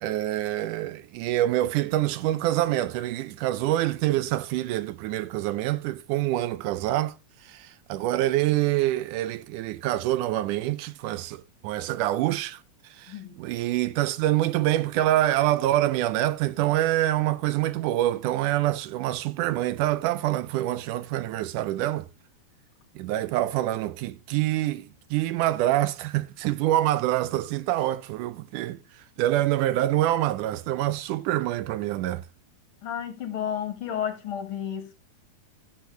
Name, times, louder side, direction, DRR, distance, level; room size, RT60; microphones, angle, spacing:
voice 1, 0.0-7.2 7.5-12.6 13.0-22.1 23.0-28.8 29.2-32.2, right 14 dB, 85° right, 2.2 m, -26 dB
voice 2, 13.1-13.4 32.8-34.9, left 9 dB, 50° left, 2.1 m, -32 dB
12.5 x 8.6 x 3.2 m
omnidirectional pair, 3.6 m